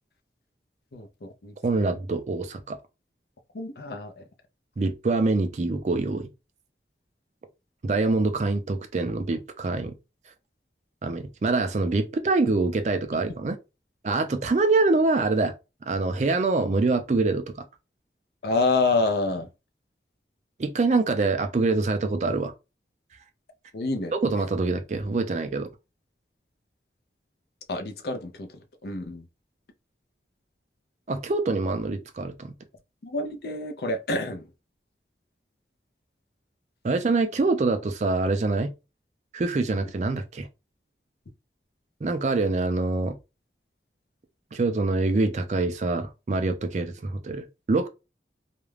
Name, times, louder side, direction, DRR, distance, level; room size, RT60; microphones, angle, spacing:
voice 1, 0.9-1.5 1.9-2.0 3.5-4.2 18.4-19.5 23.7-24.1 27.7-29.3 33.0-34.5, left 3 dB, 60° left, 0.5 m, -28 dB
voice 2, 1.6-2.8 4.8-6.3 7.8-10.0 11.0-13.6 14.0-15.5 15.9-17.6 20.6-22.5 24.1-25.7 31.1-32.5 36.8-38.7 39.3-40.5 42.0-43.2 44.5-47.9, right 3 dB, 40° right, 0.4 m, -25 dB
2.4 x 2.1 x 3.1 m
head